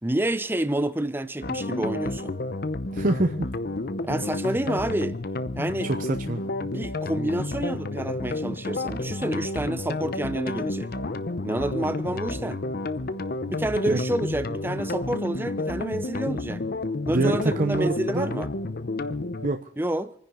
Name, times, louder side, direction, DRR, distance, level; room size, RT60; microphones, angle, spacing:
voice 1, 0.0-2.3 4.0-5.2 5.6-5.9 6.6-10.9 11.4-12.6 13.5-16.6 17.1-18.5 19.8-20.1, right 1 dB, 10° right, 0.7 m, -28 dB
sound 1, 1.4-19.5, left 2 dB, 50° left, 0.7 m, -31 dB
voice 2, 2.9-3.5 5.8-6.4 13.9-14.0 17.1-18.3 19.4-19.7, right 2 dB, 45° right, 0.9 m, -25 dB
27.5 x 10.5 x 3.9 m
head